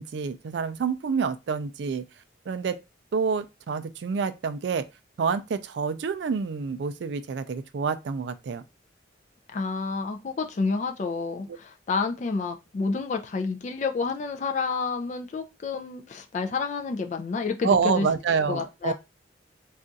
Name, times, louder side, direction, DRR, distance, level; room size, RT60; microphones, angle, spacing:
voice 1, 0.0-2.0 2.5-2.8 3.1-4.8 5.2-8.6 11.5-11.6 17.6-18.9, right 5 dB, 65° right, 0.3 m, -27 dB
voice 2, 9.5-18.1 18.5-18.9, left 4 dB, 40° left, 0.3 m, -29 dB
2.4 x 2.3 x 3.9 m
head